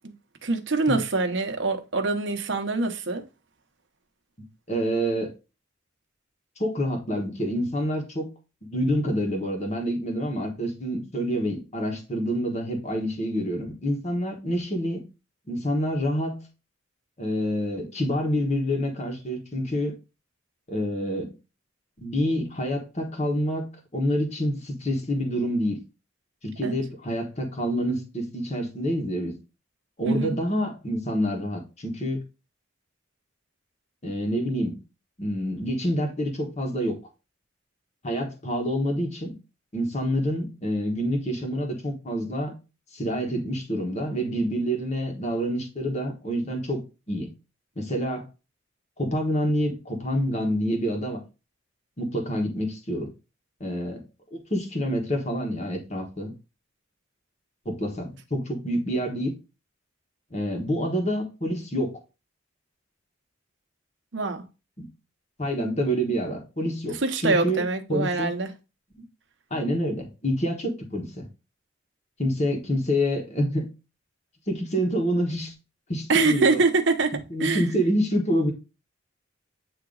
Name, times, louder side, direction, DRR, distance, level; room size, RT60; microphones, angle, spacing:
voice 1, 0.4-3.2 26.6-26.8 30.1-30.4 64.1-64.4 67.0-68.5 76.1-77.6, right 3 dB, 65° right, 0.9 m, -24 dB
voice 2, 4.7-5.3 6.6-8.3 8.6-15.0 15.5-16.5 17.2-19.9 20.7-21.3 22.0-25.8 26.4-29.3 30.0-32.2 34.0-34.8 35.2-37.0 38.0-39.4 39.7-42.5 42.9-46.8 47.1-47.3 47.8-48.3 49.0-51.2 52.0-53.1 53.6-54.0 54.3-56.3 57.6-59.3 60.3-62.0 64.8-64.9 65.4-68.3 69.5-71.3 72.2-73.7 74.5-75.5 75.9-76.6 77.3-78.5, equal, 35° left, 1.3 m, -27 dB
8.6 x 2.9 x 3.9 m
head